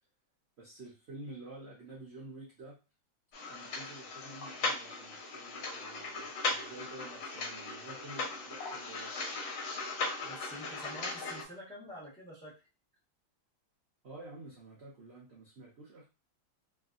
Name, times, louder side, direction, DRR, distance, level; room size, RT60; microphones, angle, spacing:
voice 1, 0.6-2.8 3.5-9.1 14.0-16.1, right 2 dB, 60° right, -4 dB, 0.7 m, -49 dB
sound 1, 3.3-11.4, left 3 dB, 75° left, 1.5 m, -38 dB
voice 2, 10.2-12.5, equal, 5° left, -5 dB, 0.8 m, -47 dB
3.1 x 2.6 x 2.5 m, 0.30 s
omnidirectional pair, 2.1 m